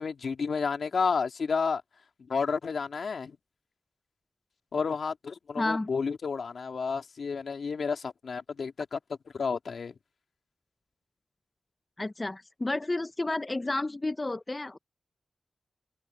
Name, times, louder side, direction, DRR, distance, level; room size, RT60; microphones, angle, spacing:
voice 1, 0.0-1.8 2.3-3.4 4.7-9.0 9.3-9.9, left 5 dB, 75° left, 2.3 m, -31 dB
voice 2, 5.6-5.9 12.0-14.8, left 2 dB, 25° left, 0.4 m, -31 dB
wide cardioid pair, 135°, 0 cm